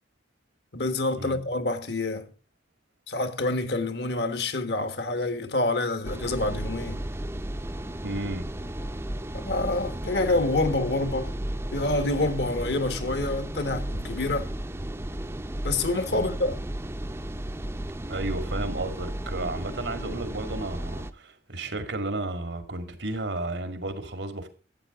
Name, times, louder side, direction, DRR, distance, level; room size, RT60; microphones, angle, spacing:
voice 1, 0.7-2.3 3.1-7.0 9.3-11.3 11.7-14.5 15.6-16.6, left 2 dB, 65° left, 1.4 m, -27 dB
sound 1, 6.0-21.1, right 1 dB, 15° right, 0.6 m, -34 dB
voice 2, 8.0-8.5 16.1-16.4 18.1-24.5, right 2 dB, 85° right, 2.2 m, -33 dB
12.5 x 9.0 x 3.7 m
head